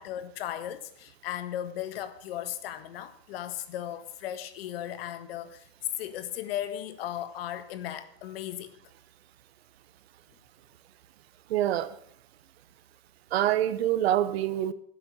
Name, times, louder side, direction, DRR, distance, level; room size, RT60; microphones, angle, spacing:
voice 1, 0.0-5.7 6.0-8.7, left 11 dB, 70° left, 1.6 m, -36 dB
voice 2, 11.5-11.9 13.3-14.7, right 12 dB, 75° right, 1.2 m, -25 dB
12.5 x 7.9 x 7.8 m
supercardioid pair, 130°, 31 cm